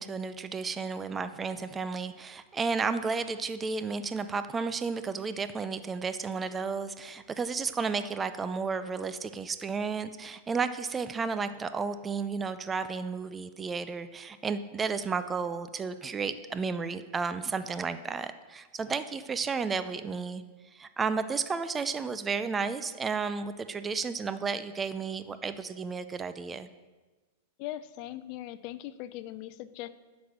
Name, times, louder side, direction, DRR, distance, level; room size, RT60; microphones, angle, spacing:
voice 1, 0.0-20.4 20.7-26.7, right 5 dB, 20° right, 11 dB, 0.5 m, -32 dB
voice 2, 27.6-29.9, left 14 dB, 50° left, 13 dB, 0.6 m, -40 dB
9.2 x 6.2 x 6.2 m, 1.3 s
hypercardioid pair, 115°, 0 cm